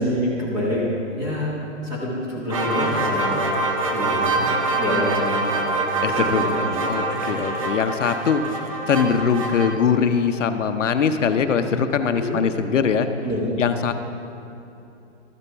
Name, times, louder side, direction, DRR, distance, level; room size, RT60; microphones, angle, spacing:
voice 1, 0.0-3.6 3.9-5.6 6.1-7.6 12.1-12.4 13.2-13.5, equal, 10° right, -5 dB, 1.1 m, -27 dB
sound 1, 2.5-9.7, right 2 dB, 30° right, 0.6 m, -25 dB
voice 2, 6.0-6.4 6.8-13.1 13.6-13.9, left 6 dB, 85° left, 8 dB, 0.8 m, -22 dB
13.0 x 6.9 x 4.5 m, 2.8 s
hypercardioid pair, 170°, 36 cm